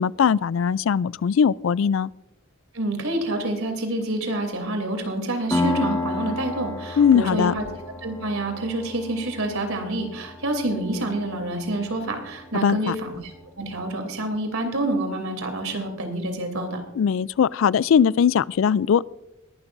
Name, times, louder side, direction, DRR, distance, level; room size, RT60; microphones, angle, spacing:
voice 1, 0.0-2.1 7.0-7.5 12.6-13.0 17.0-19.0, left 7 dB, 70° left, 0.3 m, -20 dB
voice 2, 2.7-7.6 8.0-13.3 13.6-16.8, right 1 dB, 90° right, 3.0 m, -27 dB
Piano, 5.5-12.9, left 2 dB, 15° left, 2.5 m, -32 dB
21.5 x 12.0 x 2.6 m
head